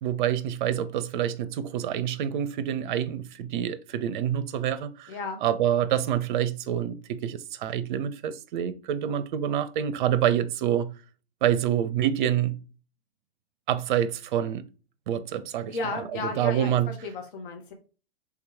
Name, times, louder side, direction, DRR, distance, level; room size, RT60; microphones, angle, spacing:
voice 1, 0.0-5.1 5.4-10.9 11.4-12.6 13.7-14.7 15.1-15.8 16.1-16.9, right 10 dB, 55° right, 0.5 m, -27 dB
voice 2, 5.1-5.4 15.6-17.7, left 3 dB, 60° left, 1.0 m, -34 dB
3.5 x 3.0 x 3.4 m
figure-of-eight pair, 105°, 30 cm